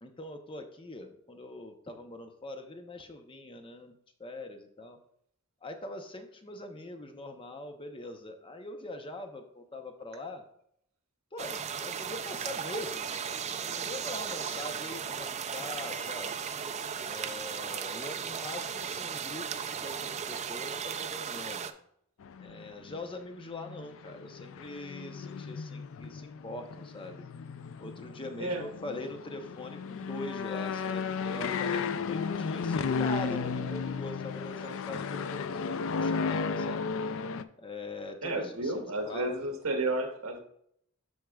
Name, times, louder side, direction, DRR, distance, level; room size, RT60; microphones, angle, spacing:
voice 1, 0.0-3.9 4.2-5.0 5.6-10.4 11.3-16.4 17.0-21.7 22.4-27.3 27.8-36.9 37.6-39.4, left 2 dB, 25° left, 5 dB, 0.8 m, -42 dB
sound 1, 11.4-21.7, right 7 dB, 30° right, 0.4 m, -36 dB
sound 2, 22.2-23.0 23.4-37.4, left 5 dB, 65° left, 0.4 m, -34 dB
voice 2, 38.2-40.4, right 2 dB, 75° right, 3 dB, 1.4 m, -32 dB
12.5 x 4.6 x 2.3 m, 0.70 s
head